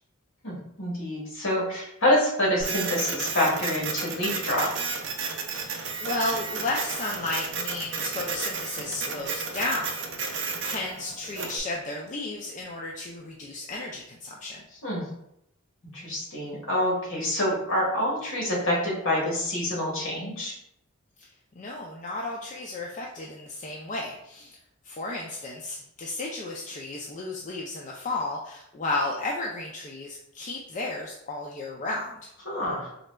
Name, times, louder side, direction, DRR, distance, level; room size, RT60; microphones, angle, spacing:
voice 1, 0.4-4.7 14.8-15.0 15.9-20.5 32.4-32.9, left 1 dB, 65° left, -3 dB, 1.3 m, -27 dB
Printer, 2.6-11.6, right 5 dB, 55° right, 0.5 m, -32 dB
voice 2, 5.5-14.6 21.6-24.6 24.8-32.2, left 2 dB, 35° left, -2 dB, 0.3 m, -33 dB
3.8 x 2.2 x 3.2 m, 0.77 s
head